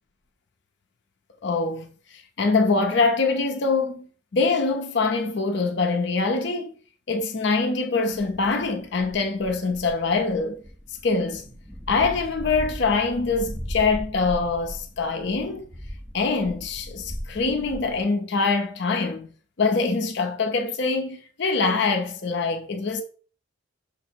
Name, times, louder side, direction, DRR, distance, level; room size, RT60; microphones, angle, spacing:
voice 1, 1.4-4.1 4.3-6.7 7.1-10.6 11.0-11.5 11.9-15.6 16.1-19.3 19.6-23.0, left 4 dB, 55° left, 0.5 m, -24 dB
sound 1, 8.1-18.0, equal, 10° right, 0.7 m, -38 dB
5.7 x 2.0 x 4.3 m
head